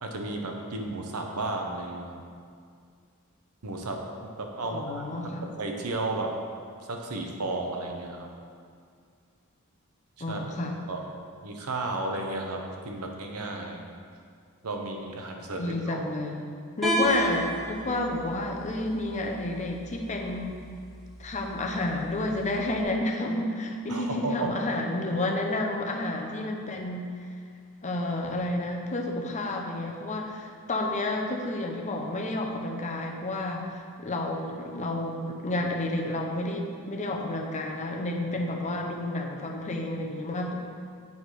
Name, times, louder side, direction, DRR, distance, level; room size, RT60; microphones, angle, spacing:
voice 1, 0.0-2.2 3.6-4.0 4.4-5.0 5.6-6.3 6.9-8.3 10.3-10.4 10.9-11.0 11.4-13.8 14.6-16.0 23.9-24.6, right 2 dB, 85° right, 2 dB, 1.0 m, -33 dB
voice 2, 4.6-5.4 10.2-10.8 15.6-16.4 16.8-20.6 21.2-27.1 27.8-40.6, left 2 dB, 35° left, 1 dB, 0.8 m, -30 dB
sound 1, 16.8-22.8, right 1 dB, ahead, 1.3 m, -34 dB
8.2 x 4.7 x 4.9 m, 2.2 s
head